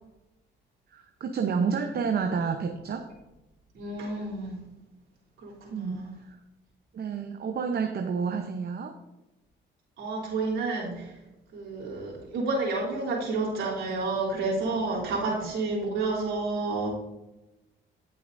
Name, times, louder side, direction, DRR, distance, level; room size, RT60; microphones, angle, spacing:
voice 1, 0.9-3.1 5.7-6.4 6.9-8.9, right 5 dB, 55° right, 5 dB, 0.9 m, -30 dB
voice 2, 3.7-4.6 5.4-6.1 10.0-11.2 11.5-16.9, right 3 dB, 80° right, -6 dB, 3.3 m, -30 dB
16.0 x 6.8 x 2.6 m, 0.99 s
cardioid pair, 90°, 20 cm